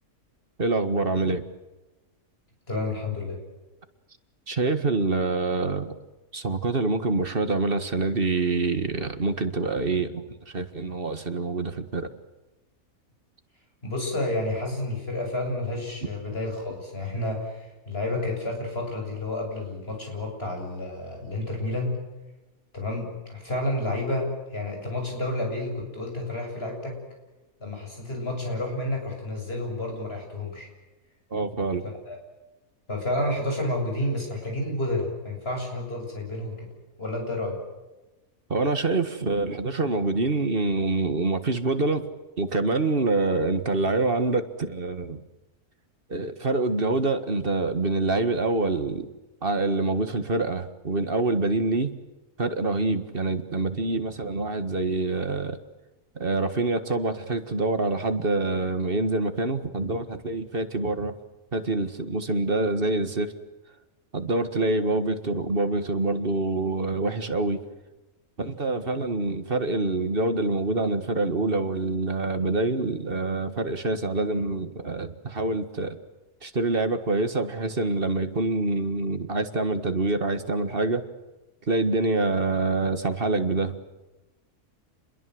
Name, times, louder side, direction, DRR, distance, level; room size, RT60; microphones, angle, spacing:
voice 1, 0.6-1.4 4.5-5.9 6.3-10.2 10.5-12.1 31.3-31.8 38.5-42.0 42.4-45.2 46.1-49.1 49.4-51.9 52.4-55.6 56.2-61.1 61.5-63.3 64.1-67.6 68.4-76.0 76.4-81.0 81.7-83.8, right 3 dB, 40° right, 9 dB, 1.9 m, -26 dB
voice 2, 2.7-3.4 13.8-22.0 22.7-27.0 27.6-30.7 32.1-32.2 32.9-36.7 37.0-37.6, left 1 dB, 40° left, 2 dB, 7.8 m, -30 dB
29.0 x 21.5 x 7.9 m, 1.1 s
omnidirectional pair, 1.6 m